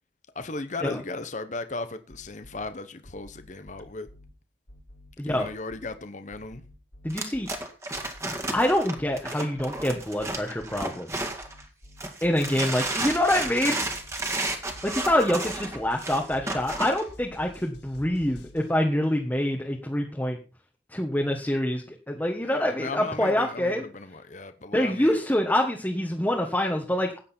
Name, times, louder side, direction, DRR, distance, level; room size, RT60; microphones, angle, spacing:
voice 1, 0.3-4.1 5.2-6.6 22.4-25.2, left 3 dB, 40° left, 0.9 m, -36 dB
sound 1, 2.1-2.7 3.0-4.3 4.7-5.9 6.3-7.6 7.9-9.2 9.6-10.8 11.2-12.5 12.8-18.7, left 1 dB, 80° left, 5.2 m, -49 dB
voice 2, 5.2-5.5 7.0-7.5 8.5-11.3 12.2-13.8 14.8-20.4 20.9-23.9 24.7-27.2, left 1 dB, 10° left, 1.4 m, -26 dB
sound 2, 7.1-11.6 12.0-17.0, right 2 dB, 15° right, 2.0 m, -32 dB
14.5 x 9.2 x 4.4 m
head